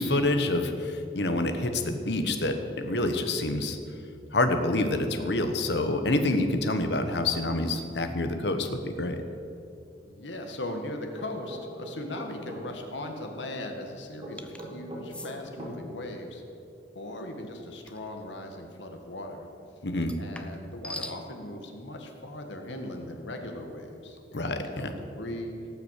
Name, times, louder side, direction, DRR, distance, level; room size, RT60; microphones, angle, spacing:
voice 1, 0.0-3.8 4.3-9.2 19.8-20.1 24.3-24.9, left 2 dB, 65° left, 7 dB, 1.2 m, -27 dB
voice 2, 3.2-3.6 10.0-16.4 17.0-19.4 20.2-25.6, left 1 dB, 85° left, 4 dB, 1.9 m, -39 dB
sound 1, 11.2-12.6 14.2-15.8, equal, 30° right, 3.5 m, -41 dB
sound 2, 14.4-14.7 15.1-15.3 17.9-18.1 20.0-21.2, left 1 dB, 5° left, 0.6 m, -41 dB
17.5 x 6.1 x 8.3 m, 2.6 s
head